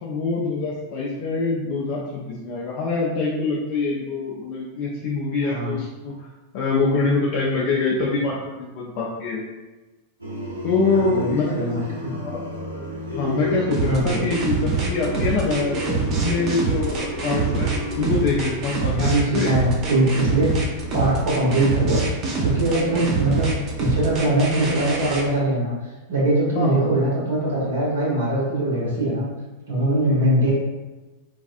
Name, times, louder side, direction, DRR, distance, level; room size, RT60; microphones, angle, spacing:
voice 1, 0.0-6.3 6.5-9.4 10.6-11.7 12.2-12.4 13.1-17.7 17.9-19.5 22.9-23.0 26.6-26.9 30.1-30.3, left 4 dB, 45° left, -5 dB, 0.4 m, -25 dB
voice 2, 5.4-5.7 10.9-11.8 13.8-14.3 18.9-20.5 20.9-22.0 22.4-23.5 23.8-25.7 26.1-29.2 29.7-30.5, right 1 dB, 60° right, -6 dB, 1.2 m, -22 dB
sound 1, 10.2-18.8, equal, 85° right, 0.7 m, -31 dB
sound 2, 13.7-25.2, right 4 dB, 35° right, 0.6 m, -25 dB
3.4 x 2.4 x 2.4 m, 1.2 s
figure-of-eight pair, 90°, 0 cm